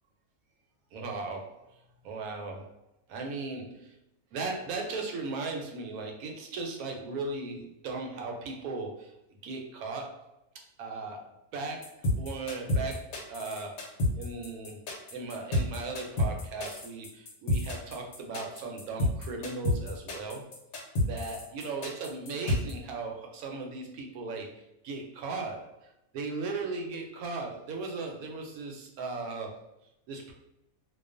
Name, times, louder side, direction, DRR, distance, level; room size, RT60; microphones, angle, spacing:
voice 1, 0.9-2.7 3.1-4.0 4.3-9.1 9.4-10.3 10.8-14.8 15.1-20.5 21.1-29.6 30.1-30.3, right 3 dB, 80° right, 2 dB, 1.0 m, -37 dB
sound 1, 11.8-22.7, left 1 dB, 75° left, 1.1 m, -29 dB
2.4 x 2.3 x 2.4 m, 0.84 s
omnidirectional pair, 1.5 m